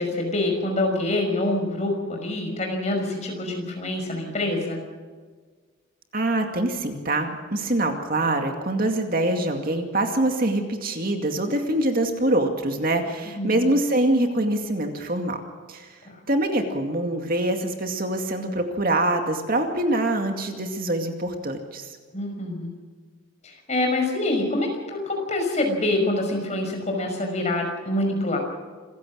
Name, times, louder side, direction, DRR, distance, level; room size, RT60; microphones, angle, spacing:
voice 1, 0.0-4.8 13.3-13.6 22.1-22.7 23.4-28.4, left 2 dB, 35° left, 2 dB, 5.8 m, -26 dB
voice 2, 6.1-15.4 15.7-16.0 16.3-21.9, right 1 dB, 45° right, 4 dB, 2.3 m, -24 dB
27.0 x 15.5 x 6.4 m, 1.5 s
head